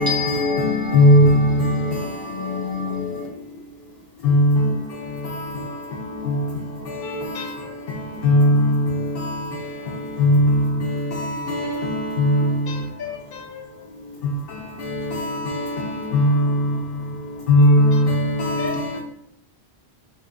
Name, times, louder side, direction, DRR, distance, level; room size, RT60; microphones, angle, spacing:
voice 1, 0.0-3.3, left 4 dB, 55° right, 1.4 m, -26 dB
voice 2, 0.6-1.6 4.2-4.7 8.2-8.8 10.2-10.6 11.8-12.4 16.1-16.5 17.5-18.5, left 1 dB, 65° left, 0.8 m, -16 dB
voice 3, 7.0-7.7 12.3-13.9 17.6-19.0, left 3 dB, 30° left, 0.4 m, -36 dB
2.8 x 2.7 x 3.4 m
omnidirectional pair, 1.1 m